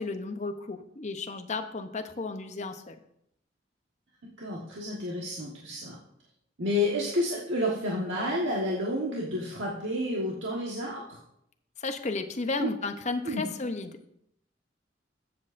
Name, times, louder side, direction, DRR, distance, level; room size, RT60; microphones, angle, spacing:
voice 1, 0.0-3.0 11.8-14.1, left 3 dB, 40° left, 7 dB, 0.7 m, -33 dB
voice 2, 4.4-5.9 6.6-11.0 12.6-12.7 13.2-13.4, left 1 dB, 90° right, -4 dB, 1.4 m, -30 dB
14.0 x 7.8 x 2.6 m, 0.76 s
head